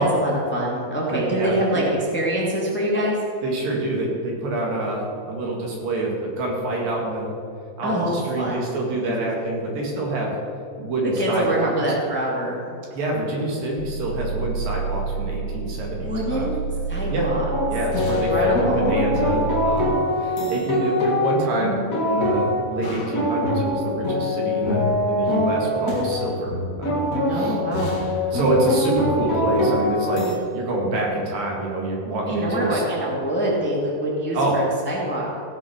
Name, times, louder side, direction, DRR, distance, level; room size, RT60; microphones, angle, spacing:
voice 1, 0.0-3.2 7.8-8.7 9.0-9.3 11.0-12.8 16.0-16.6 16.9-17.5 17.9-18.9 27.3-28.0 32.3-35.3, right 1 dB, 5° left, -4 dB, 1.8 m, -25 dB
voice 2, 1.1-1.8 3.4-7.3 7.8-10.3 10.8-11.7 12.9-16.5 17.1-17.3 17.7-21.8 22.0-27.6 28.3-32.8 34.3-34.5, right 2 dB, 85° right, -1 dB, 3.9 m, -26 dB
sound 1, 13.8-19.9, right 4 dB, 85° left, 3.1 m, -29 dB
sound 2, 17.5-30.4, left 1 dB, 35° left, 1.5 m, -23 dB
16.0 x 6.2 x 6.5 m, 2.6 s
omnidirectional pair, 3.9 m